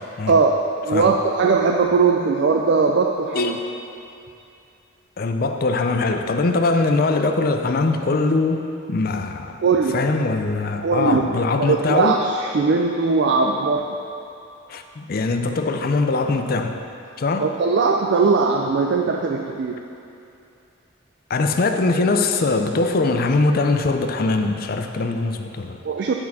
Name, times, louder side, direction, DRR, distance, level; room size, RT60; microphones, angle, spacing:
voice 1, 0.8-3.6 9.6-10.0 10.8-11.2 11.6-13.9 17.4-19.8 25.8-26.1, right 4 dB, 60° right, 2 dB, 0.4 m, -19 dB
voice 2, 3.3-3.7 5.2-9.6 9.9-12.2 14.7-16.8 17.2-17.5 21.3-25.8, left 3 dB, 45° left, 6 dB, 0.4 m, -21 dB
11.0 x 4.3 x 4.1 m, 2.6 s
head